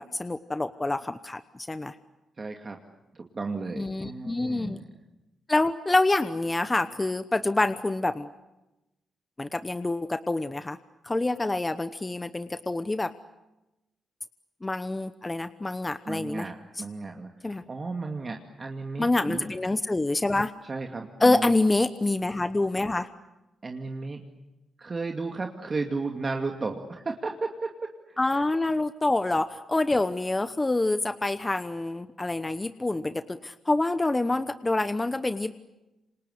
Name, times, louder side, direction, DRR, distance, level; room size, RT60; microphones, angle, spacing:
voice 1, 0.0-1.4 1.7-1.9 3.8-4.8 5.5-8.3 9.4-10.8 11.0-13.1 14.6-16.5 17.4-17.6 19.0-20.5 21.2-23.1 28.2-35.6, left 2 dB, 20° left, 11 dB, 1.0 m, -26 dB
voice 2, 2.4-2.8 3.1-4.9 16.1-19.5 20.7-21.5 23.6-24.2 24.8-28.2, right 3 dB, 35° right, 3 dB, 2.3 m, -34 dB
27.5 x 26.0 x 8.2 m, 0.98 s
cardioid pair, 95°, 0 cm